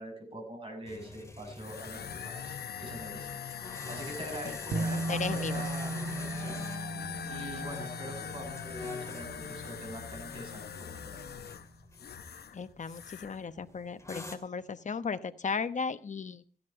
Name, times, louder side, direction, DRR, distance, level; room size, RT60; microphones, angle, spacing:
voice 1, 0.0-3.3 3.6-6.6 7.3-11.2, right 1 dB, 35° right, 2 dB, 6.8 m, -44 dB
sound 1, 0.8-14.4, left 2 dB, 20° left, 2.3 m, -47 dB
sound 2, 1.6-12.6 12.8-13.4, left 8 dB, 85° left, 0.9 m, -42 dB
sound 3, 4.7-11.3, right 2 dB, 85° right, 1.7 m, -38 dB
voice 2, 4.9-5.6 12.5-16.4, left 5 dB, 50° left, 12 dB, 1.0 m, -36 dB
15.0 x 10.5 x 5.7 m, 0.42 s
wide cardioid pair, 110°, 16 cm